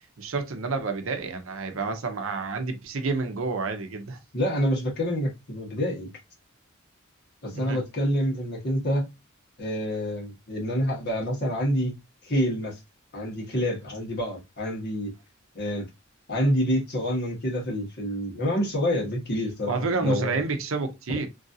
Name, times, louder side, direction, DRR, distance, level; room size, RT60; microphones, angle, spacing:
voice 1, 0.2-4.2 7.5-7.8 19.7-21.3, right 3 dB, 70° right, 0.6 m, -29 dB
voice 2, 4.3-6.1 7.4-9.1 9.6-11.9 12.2-12.8 13.1-15.1 15.5-15.9 16.3-20.4 21.1-21.2, equal, 50° left, 1.4 m, -27 dB
3.1 x 2.5 x 2.6 m
head